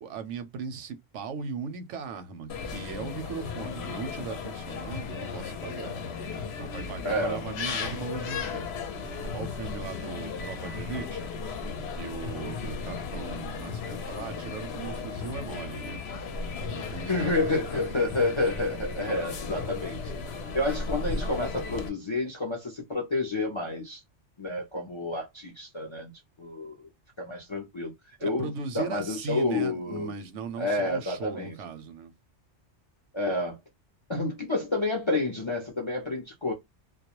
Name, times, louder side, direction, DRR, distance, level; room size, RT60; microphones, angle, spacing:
voice 1, 0.0-6.0 6.6-8.7 9.0-11.2 11.9-16.0 16.5-18.0 28.2-32.1, right 5 dB, 85° right, 0.9 m, -38 dB
sound 1, 2.5-21.9, left 4 dB, 70° left, 0.8 m, -35 dB
voice 2, 7.0-7.4 17.1-20.0 20.5-24.0 24.4-26.1 26.4-26.7 27.2-27.9 28.2-30.1 30.6-31.5 33.1-33.6 34.1-36.5, left 2 dB, 45° left, 0.3 m, -29 dB
2.2 x 2.0 x 2.8 m
omnidirectional pair, 1.2 m